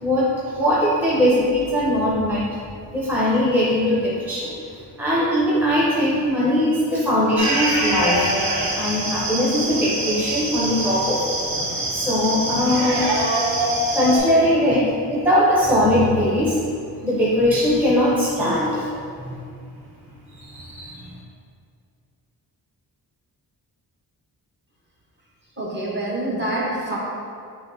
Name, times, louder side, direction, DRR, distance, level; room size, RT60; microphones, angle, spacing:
voice 1, 0.0-2.4 2.9-4.5 5.0-8.3 8.7-11.3 11.9-13.1 13.9-16.6 17.0-18.9 19.2-19.5 20.4-21.1, left 1 dB, 5° right, -8 dB, 0.6 m, -20 dB
sound 1, 7.4-14.2, right 1 dB, 85° right, 1.0 m, -24 dB
voice 2, 25.6-27.0, right 1 dB, 30° right, -5 dB, 0.9 m, -26 dB
6.9 x 3.0 x 2.5 m, 2.3 s
wide cardioid pair, 160°, 39 cm